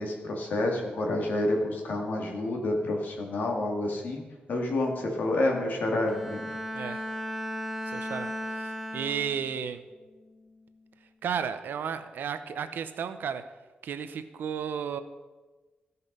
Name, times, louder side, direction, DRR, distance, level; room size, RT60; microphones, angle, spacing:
voice 1, 0.0-4.2 4.5-6.5, left 1 dB, 60° left, 1 dB, 2.1 m, -29 dB
Bowed string instrument, 6.0-9.6 10.1-10.5, equal, 10° left, 1.2 m, -36 dB
voice 2, 6.7-7.1 7.9-9.8 11.2-13.4 13.8-15.0, right 7 dB, 75° right, 11 dB, 0.7 m, -33 dB
15.5 x 5.5 x 5.4 m, 1.2 s
wide cardioid pair, 170°, 3 cm